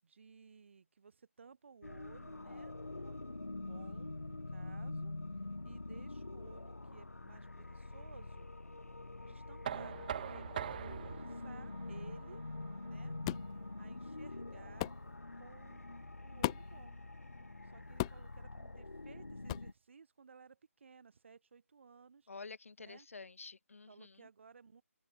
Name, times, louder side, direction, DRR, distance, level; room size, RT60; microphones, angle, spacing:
voice 1, 0.0-5.1 5.6-8.5 9.2-12.4 12.8-13.1 13.8-14.9 15.4-17.0 17.6-22.3 22.9-23.1 23.9-24.8, right 5 dB, 55° right, 7.8 m, -58 dB
sound 1, 1.8-19.7, left 2 dB, 85° left, 3.4 m, -46 dB
Knock, 9.6-15.4, right 10 dB, 35° right, 4.7 m, -46 dB
sound 2, 13.2-13.5 14.8-15.0 16.4-16.8 18.0-18.3 19.5-19.7, left 18 dB, 20° left, 1.0 m, -36 dB
voice 2, 22.3-24.3, left 4 dB, 65° left, 5.5 m, -50 dB
figure-of-eight pair, 150°, 8 cm